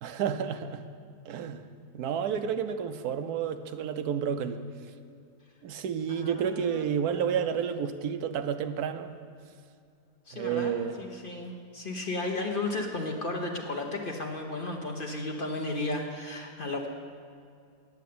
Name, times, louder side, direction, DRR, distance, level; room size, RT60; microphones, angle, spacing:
voice 1, 0.0-0.9 1.3-1.6 1.9-4.6 5.6-9.1 10.3-11.0, right 7 dB, 75° right, 9 dB, 1.1 m, -30 dB
voice 2, 6.1-6.8 7.1-7.4 10.3-10.7 11.0-16.9, left 2 dB, 40° left, 1 dB, 0.9 m, -34 dB
9.6 x 8.0 x 8.5 m, 2.3 s
omnidirectional pair, 1.7 m